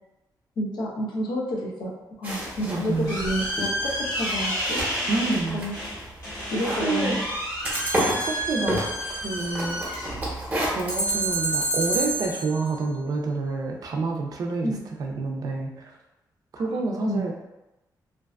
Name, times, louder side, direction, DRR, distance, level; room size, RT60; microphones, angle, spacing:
voice 1, 0.6-1.9 2.2-4.8 5.5-5.7 6.5-7.2 14.6-14.8 16.6-17.3, equal, 75° left, -2 dB, 0.6 m, -30 dB
sound 1, 2.2-12.3, equal, 20° right, 0.7 m, -33 dB
sound 2, 2.4-11.5, equal, 50° left, 1.2 m, -31 dB
voice 2, 2.7-3.2 5.1-5.6 6.8-7.2 8.2-8.8 9.1-9.8 10.6-16.0 16.5-17.3, right 3 dB, 55° right, 1 dB, 0.4 m, -28 dB
sound 3, 7.7-8.8 10.9-12.7, right 2 dB, 10° left, 0.7 m, -28 dB
2.5 x 2.2 x 2.3 m, 0.96 s
wide cardioid pair, 130°, 7 cm